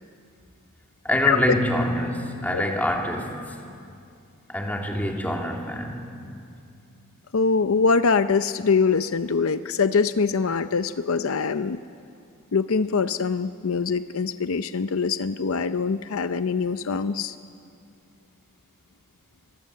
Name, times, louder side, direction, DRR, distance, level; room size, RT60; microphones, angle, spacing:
voice 1, 1.0-3.4 4.5-6.1, equal, 10° left, 1 dB, 2.8 m, -25 dB
voice 2, 7.3-11.8 12.5-17.4, left 5 dB, 70° left, 11 dB, 0.6 m, -23 dB
27.5 x 22.5 x 7.6 m, 2.4 s
head